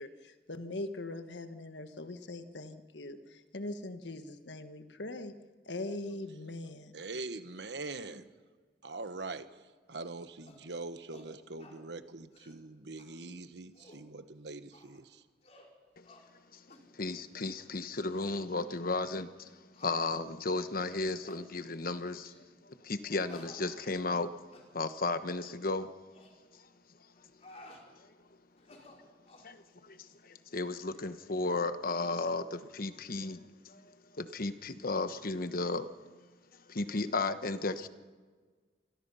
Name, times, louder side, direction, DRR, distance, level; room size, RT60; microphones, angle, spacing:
voice 1, 0.0-5.3 5.6-6.9, left 2 dB, 85° left, 8 dB, 1.6 m, -41 dB
voice 2, 6.9-8.2 8.8-9.5 9.9-15.2, right 3 dB, 75° right, 10 dB, 1.3 m, -43 dB
sound 1, 10.5-10.7 11.1-11.3 11.6-11.8 12.2-12.6 13.0-13.1 13.6-14.1 14.7-15.0 15.4-15.7 16.0-16.2 16.7-16.9 17.4-17.7 18.1-18.2 18.8-18.9 19.7-20.0 20.5-20.7 21.2-21.4 22.2-22.5 23.3-24.2 24.5-24.7 25.3-25.6 26.1-26.3 27.1-27.8 28.6-29.5, left 2 dB, 40° left, 4.5 m, -56 dB
voice 3, 16.9-19.5 19.8-22.3 22.6-24.4 24.7-25.9 26.5-26.6 29.4-35.9 36.7-37.9, left 3 dB, 55° left, 10 dB, 1.2 m, -34 dB
27.5 x 21.5 x 5.7 m, 1.5 s
head